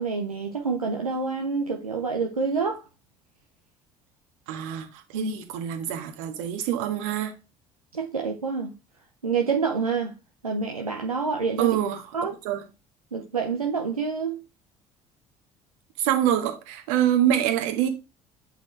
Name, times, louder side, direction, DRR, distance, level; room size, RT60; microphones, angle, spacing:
voice 1, 0.0-2.8 5.1-5.3 7.9-8.7 9.2-10.2 10.4-11.8 12.1-12.3 13.1-14.4, right 5 dB, 90° right, 0.6 m, -27 dB
voice 2, 4.5-7.3 11.6-12.0 12.4-12.6 16.0-17.9, right 11 dB, 65° right, 1.5 m, -25 dB
8.1 x 4.0 x 3.1 m
figure-of-eight pair, 55°, 18 cm